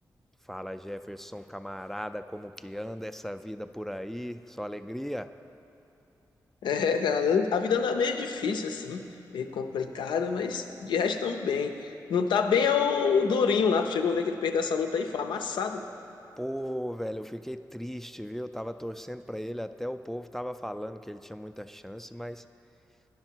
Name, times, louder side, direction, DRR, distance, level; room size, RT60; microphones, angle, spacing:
voice 1, 0.5-5.3 16.4-22.4, equal, 5° left, 10 dB, 0.3 m, -37 dB
voice 2, 6.6-9.1 9.3-15.8, left 6 dB, 90° left, 6 dB, 0.5 m, -27 dB
10.5 x 5.8 x 4.5 m, 2.9 s
cardioid pair, 50°, 8 cm